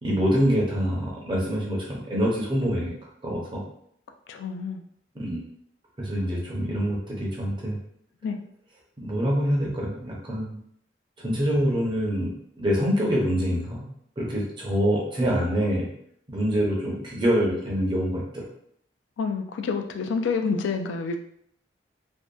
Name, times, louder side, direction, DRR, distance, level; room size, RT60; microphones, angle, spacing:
voice 1, 0.0-2.9 3.2-3.6 5.1-5.4 6.0-7.8 9.0-10.6 11.2-13.9 14.2-15.9 16.3-18.4, equal, 25° right, -3 dB, 0.6 m, -25 dB
voice 2, 4.3-4.8 8.2-8.4 19.2-21.2, left 5 dB, 90° left, 8 dB, 0.3 m, -28 dB
2.6 x 2.1 x 2.2 m, 0.69 s
head